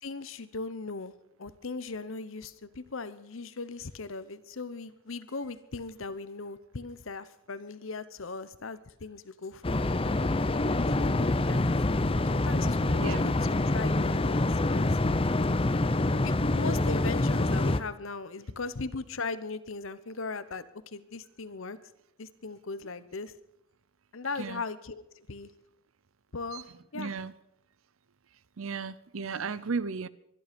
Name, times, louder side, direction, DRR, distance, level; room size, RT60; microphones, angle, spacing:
voice 1, 0.0-1.1 1.4-9.8 10.7-11.6 12.3-13.3 13.7-15.0 16.2-21.8 22.2-23.3 24.1-25.5 26.3-27.1, left 3 dB, 70° left, 0.9 m, -38 dB
sound 1, 9.6-17.8, left 2 dB, 25° left, 0.6 m, -26 dB
voice 2, 13.0-13.3 15.6-16.0 24.4-24.6 26.5-26.6 26.9-27.3 28.6-30.1, right 5 dB, 75° right, 0.7 m, -35 dB
24.0 x 11.0 x 5.2 m
head